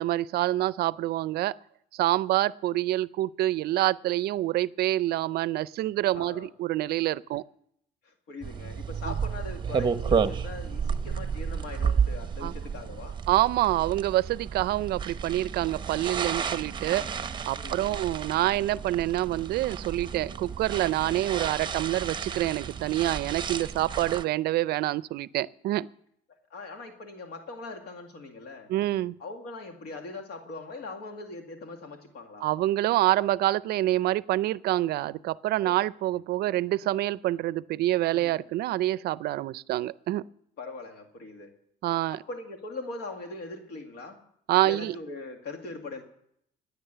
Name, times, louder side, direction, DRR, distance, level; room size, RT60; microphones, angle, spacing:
voice 1, 0.0-1.6 1.9-7.4 9.1-9.2 12.4-12.5 13.3-17.0 17.5-25.9 28.7-29.2 32.4-40.2 41.8-42.2 44.5-45.0, right 15 dB, 70° right, 20 dB, 0.4 m, -27 dB
voice 2, 6.1-6.5 8.0-13.2 17.6-18.0 26.5-28.7 29.2-32.5 35.6-35.7 38.1-38.5 40.6-41.5 42.1-44.2 44.6-46.0, left 3 dB, 75° left, 4 dB, 2.1 m, -41 dB
sound 1, 8.4-24.2, right 6 dB, 25° right, 0.7 m, -32 dB
16.0 x 9.5 x 6.7 m, 0.71 s
cardioid pair, 110°, 17 cm